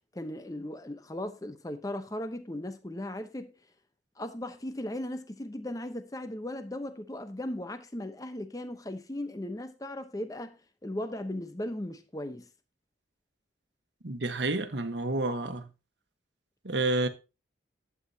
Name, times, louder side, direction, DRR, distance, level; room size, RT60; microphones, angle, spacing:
voice 1, 0.1-3.5 4.2-12.5, left 1 dB, 20° left, 0.8 m, -37 dB
voice 2, 14.0-15.7 16.6-17.1, right 2 dB, 80° right, 1.2 m, -29 dB
11.5 x 8.4 x 2.7 m
head